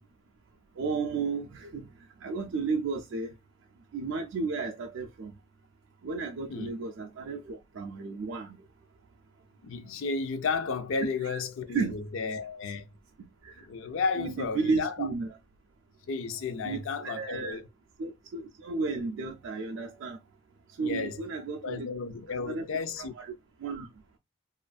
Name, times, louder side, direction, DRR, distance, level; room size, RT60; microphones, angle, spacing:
voice 1, 0.8-1.9 2.2-3.3 3.9-5.3 6.0-8.6 11.2-11.4 11.7-11.9 13.4-13.5 14.2-15.3 16.6-17.6 18.0-20.2 20.8-21.9 22.3-22.7 23.0-23.3 23.6-23.9, right 4 dB, 70° right, 0.4 m, -33 dB
voice 2, 9.6-12.9 13.6-15.1 16.1-17.6 20.8-21.2 21.6-23.1, left 4 dB, 80° left, 0.4 m, -33 dB
2.4 x 2.4 x 2.2 m
head